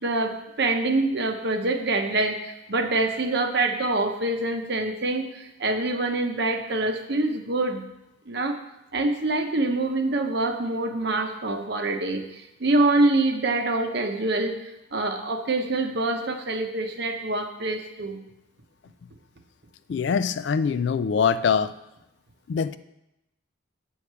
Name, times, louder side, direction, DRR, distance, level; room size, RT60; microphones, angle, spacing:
voice 1, 0.0-7.8 8.3-8.6 8.9-14.6 14.9-18.2, right 2 dB, 55° right, 5 dB, 0.9 m, -25 dB
voice 2, 19.9-21.7 22.5-22.8, left 6 dB, 55° left, 13 dB, 0.3 m, -23 dB
8.3 x 4.8 x 6.7 m, 0.88 s
head